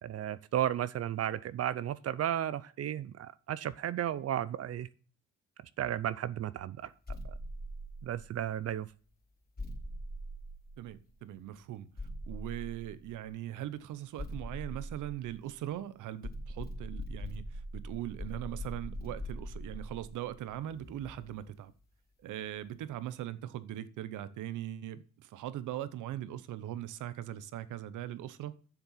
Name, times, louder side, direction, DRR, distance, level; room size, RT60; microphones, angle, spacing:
voice 1, 0.0-4.9 5.8-6.9 7.2-7.3 8.0-8.9, right 11 dB, 55° right, 0.5 m, -34 dB
sound 1, 7.1-8.6 9.6-11.2 12.0-13.3 14.2-15.8 16.2-21.5, equal, 30° left, 2.7 m, -42 dB
voice 2, 10.8-11.9 12.3-21.7 22.2-28.5, right 12 dB, 85° right, 0.9 m, -40 dB
7.9 x 7.1 x 5.6 m
cardioid pair, 90°, 30 cm